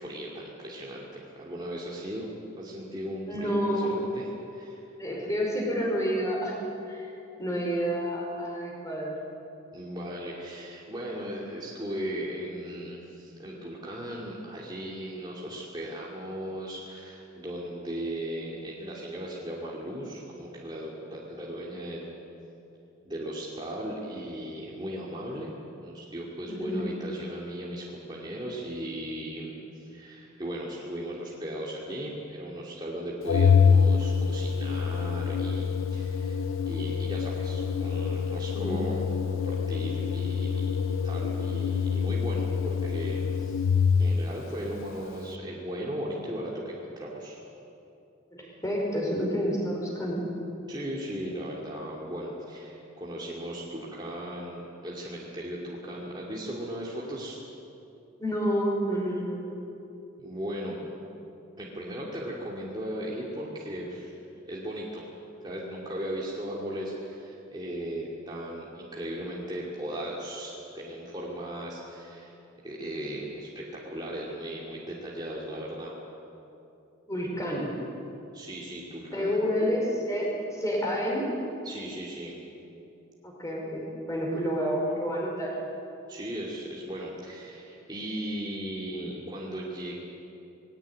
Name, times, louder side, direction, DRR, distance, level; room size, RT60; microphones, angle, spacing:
voice 1, 0.0-2.3 2.6-4.9 9.7-22.1 23.0-25.5 25.8-36.4 36.6-39.0 39.3-40.6 40.9-43.6 44.0-47.4 48.5-48.6 50.7-57.4 60.2-60.9 61.6-64.2 64.5-65.0 65.4-72.3 72.6-75.9 78.3-79.3 81.6-82.3 86.1-89.9, right 1 dB, 20° right, -5 dB, 2.5 m, -37 dB
voice 2, 3.3-4.0 5.0-6.6 6.9-7.1 7.4-9.2 26.5-26.8 38.5-38.8 48.3-50.3 58.2-59.6 77.1-77.7 79.1-81.3 83.2-85.6, equal, 15° left, -3 dB, 5.1 m, -29 dB
Organ, 33.3-44.3, left 6 dB, 80° left, 0.6 m, -26 dB
20.5 x 16.5 x 9.6 m, 2.7 s
head